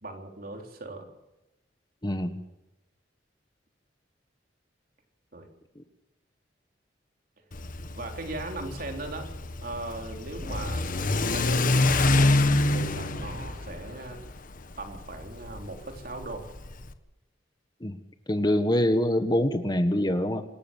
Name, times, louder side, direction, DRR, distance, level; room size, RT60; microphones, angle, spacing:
voice 1, 0.0-1.1 5.3-5.5 8.0-9.3 9.6-12.3 12.7-14.2 14.8-16.5, right 2 dB, 55° right, 3 dB, 3.7 m, -38 dB
voice 2, 2.0-2.4 5.7-5.8 17.8-18.0 18.3-20.4, left 1 dB, 25° left, 9 dB, 1.4 m, -25 dB
Car / Accelerating revving vroom, 7.5-16.9, left 2 dB, 50° left, 1.3 m, -27 dB
26.5 x 14.0 x 7.2 m, 0.99 s
head